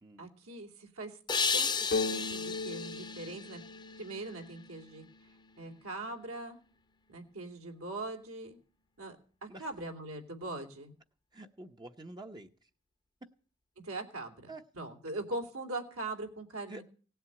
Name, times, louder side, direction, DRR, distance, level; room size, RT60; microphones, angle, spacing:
voice 1, 0.2-1.2 1.5-3.6 4.0-5.0 5.6-6.6 7.1-8.6 9.0-9.2 9.4-10.9 13.8-16.8, right 2 dB, 70° right, 3 dB, 2.9 m, -41 dB
sound 1, 1.3-4.4, left 5 dB, 20° left, 0.9 m, -34 dB
sound 2, 1.9-5.6, left 3 dB, 50° left, 0.9 m, -38 dB
voice 2, 11.3-12.7 14.5-14.6 16.7-16.8, right 2 dB, 20° right, 5 dB, 0.9 m, -48 dB
17.5 x 7.9 x 8.7 m, 0.42 s
head